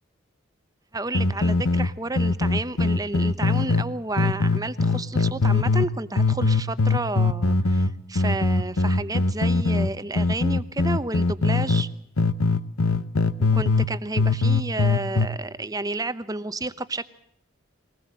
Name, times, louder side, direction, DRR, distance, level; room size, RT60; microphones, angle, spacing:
voice 1, 0.9-11.9 13.5-17.0, right 2 dB, 15° right, 14 dB, 0.8 m, -31 dB
sound 1, 1.1-3.9 4.2-5.9 6.2-11.9 12.2-13.9 14.2-15.3, left 3 dB, 85° left, 0.9 m, -21 dB
22.0 x 19.5 x 7.5 m, 0.70 s
head